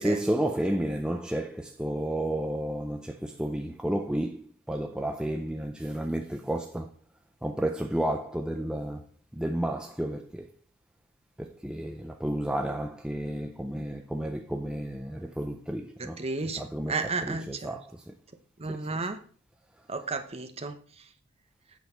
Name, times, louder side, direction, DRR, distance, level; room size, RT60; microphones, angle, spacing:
voice 1, 0.0-6.9 7.4-9.0 9.3-10.5 11.4-18.1 18.7-18.9, right 1 dB, 5° right, 0.4 m, -32 dB
voice 2, 16.2-16.6 16.9-17.7 18.6-19.2 19.9-20.8, right 3 dB, 25° right, 0.8 m, -32 dB
8.2 x 6.3 x 4.3 m
head